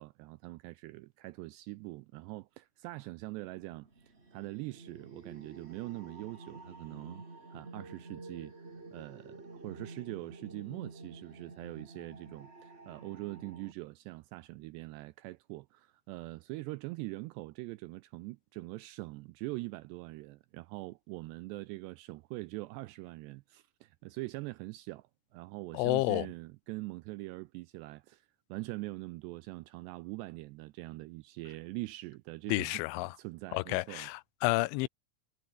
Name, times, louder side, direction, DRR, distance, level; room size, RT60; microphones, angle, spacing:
voice 1, 0.0-7.2 7.5-8.5 8.9-32.8 33.2-34.1, right 21 dB, 85° right, 2.4 m, -43 dB
sound 1, 3.5-13.7, right 3 dB, 20° right, 2.1 m, -50 dB
voice 2, 25.7-26.3 32.5-33.2 33.5-34.9, left 22 dB, 85° left, 3.1 m, -30 dB
omnidirectional pair, 5.4 m